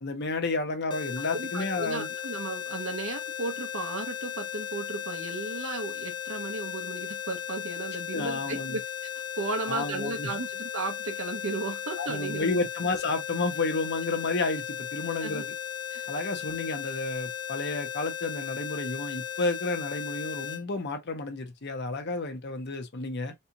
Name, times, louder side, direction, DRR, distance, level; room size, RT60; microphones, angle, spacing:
voice 1, 0.0-2.1 8.1-8.8 9.7-10.3 12.0-15.5 16.1-23.3, left 3 dB, 55° left, 0.9 m, -31 dB
sound 1, 0.9-20.6, left 10 dB, 20° left, 0.5 m, -36 dB
voice 2, 1.3-8.8 9.4-12.7 15.2-15.4 15.9-16.1, right 3 dB, 70° right, 1.0 m, -35 dB
4.3 x 2.5 x 2.7 m
head